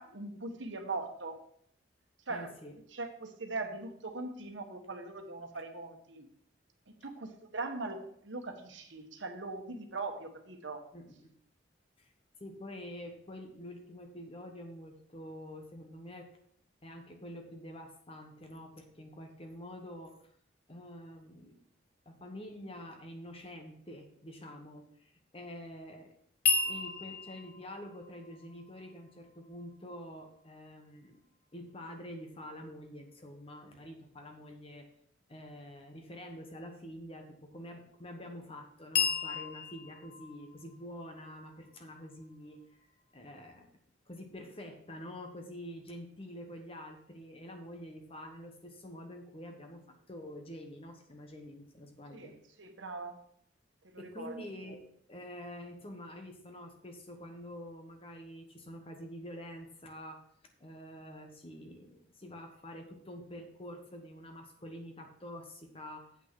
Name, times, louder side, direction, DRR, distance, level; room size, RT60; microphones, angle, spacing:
voice 1, 0.0-1.4 2.3-2.5 2.9-6.3 6.9-10.8 52.1-53.3 53.9-54.4, right 3 dB, 75° right, 5 dB, 1.3 m, -41 dB
voice 2, 2.3-2.8 10.9-11.3 12.0-12.1 12.4-16.3 16.8-20.2 20.7-21.6 22.0-26.2 26.6-31.2 31.5-34.9 35.3-42.6 43.1-43.7 44.1-52.4 54.0-60.3 60.6-66.1, left 1 dB, 30° left, 4 dB, 1.3 m, -47 dB
sound 1, 26.4-30.5 38.9-42.7, left 5 dB, 55° left, 1.2 m, -36 dB
8.2 x 5.9 x 5.9 m, 0.65 s
head